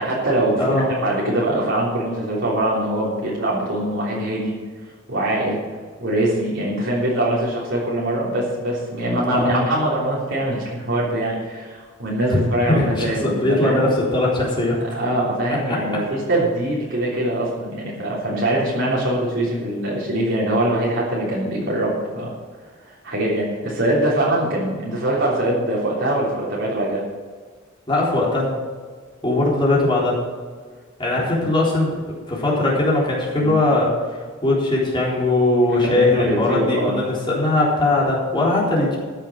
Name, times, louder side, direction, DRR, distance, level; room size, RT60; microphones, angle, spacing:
voice 1, 0.0-4.5 5.1-5.6 6.0-13.8 14.8-22.3 22.8-27.0 31.2-31.4 33.4-33.6 35.7-37.0, right 1 dB, 65° right, -6 dB, 3.4 m, -23 dB
voice 2, 0.6-0.9 9.3-9.7 12.3-14.8 27.9-28.5 29.2-30.2 31.0-32.0 32.3-33.9 34.4-39.0, left 2 dB, 25° left, -5 dB, 3.9 m, -20 dB
14.0 x 7.4 x 6.4 m, 1.5 s
head